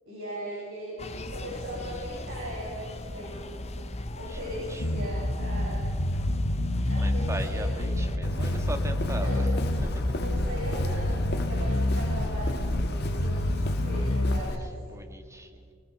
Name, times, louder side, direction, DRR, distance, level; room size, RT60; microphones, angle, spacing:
voice 1, 0.0-3.7 4.1-6.0 6.9-7.9 8.2-8.6 9.2-9.5 10.2-15.1, equal, 70° right, -6 dB, 7.4 m, -39 dB
sound 1, 1.0-8.2, left 1 dB, 30° left, 1.0 m, -39 dB
voice 2, 4.3-4.8 7.0-9.5 9.8-10.1 14.7-15.7, right 1 dB, 15° right, 5 dB, 1.7 m, -39 dB
Bass guitar, 4.8-14.4, left 1 dB, 85° left, 1.2 m, -28 dB
Walk footsteps, 8.2-14.6, left 1 dB, 55° left, 1.7 m, -36 dB
23.0 x 19.5 x 6.7 m, 2.1 s
head